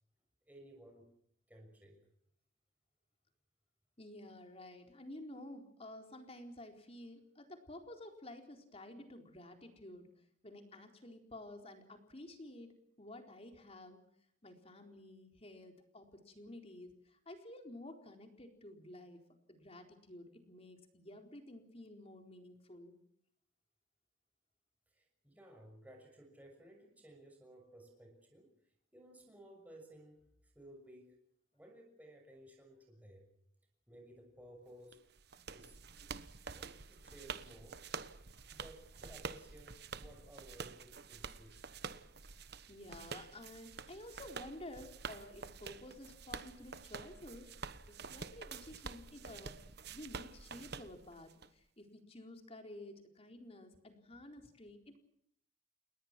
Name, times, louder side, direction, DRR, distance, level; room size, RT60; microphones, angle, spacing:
voice 1, 0.5-1.1 1.5-2.0 24.9-28.5 28.9-31.2 31.5-33.3 33.9-35.0 35.5-35.8 36.5-37.8 38.5-41.6, right 1 dB, 10° right, 2 dB, 6.4 m, -57 dB
voice 2, 4.0-10.1 10.4-14.0 14.4-19.2 19.5-23.0 42.4-47.5 47.9-49.6 49.8-55.0, left 1 dB, 30° left, 4 dB, 4.2 m, -52 dB
sound 1, 34.9-51.5, right 5 dB, 55° right, 1.2 m, -48 dB
29.5 x 20.5 x 6.1 m, 0.69 s
head